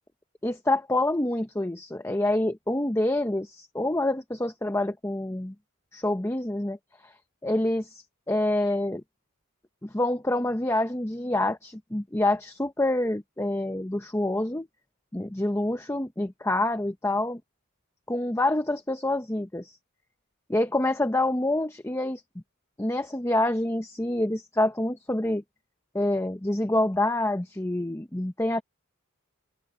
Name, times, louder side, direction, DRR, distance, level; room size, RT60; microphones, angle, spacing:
voice 1, 0.4-5.5 5.9-6.8 7.4-9.0 9.8-14.7 15.1-17.4 18.1-19.8 20.5-22.2 22.8-25.4 25.9-28.6, left 1 dB, 10° left, 0.7 m, -27 dB
open air
head